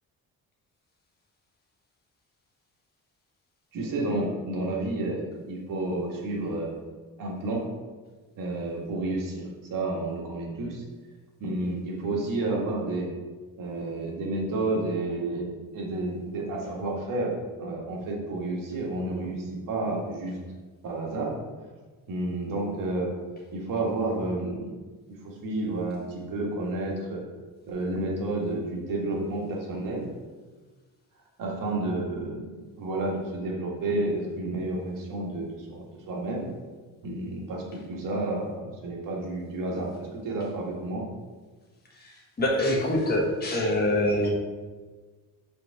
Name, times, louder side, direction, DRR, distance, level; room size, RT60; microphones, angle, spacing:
voice 1, 3.7-6.7 7.2-7.6 8.4-10.8 11.4-13.1 13.6-17.3 17.6-20.4 20.8-21.3 22.1-23.1 23.5-24.8 25.2-27.2 27.7-30.1 31.4-32.5 32.8-36.5 37.0-41.1, right 2 dB, 70° right, -2 dB, 1.6 m, -30 dB
voice 2, 42.4-44.3, left 1 dB, 30° left, -2 dB, 1.2 m, -24 dB
5.1 x 3.9 x 4.7 m, 1.4 s
cardioid pair, 130°, 34 cm